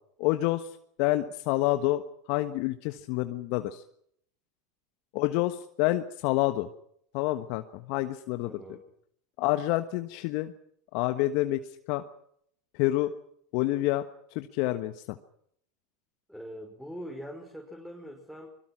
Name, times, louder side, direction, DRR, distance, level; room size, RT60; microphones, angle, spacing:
voice 1, 0.2-3.8 5.1-6.7 7.1-8.6 9.4-10.5 10.9-12.0 12.7-13.1 13.5-14.0 14.3-15.2, left 16 dB, 60° left, 9 dB, 1.3 m, -28 dB
voice 2, 8.4-8.8 16.3-18.5, equal, ahead, 2 dB, 5.4 m, -42 dB
25.0 x 22.0 x 6.2 m, 0.68 s
hypercardioid pair, 90°, 0 cm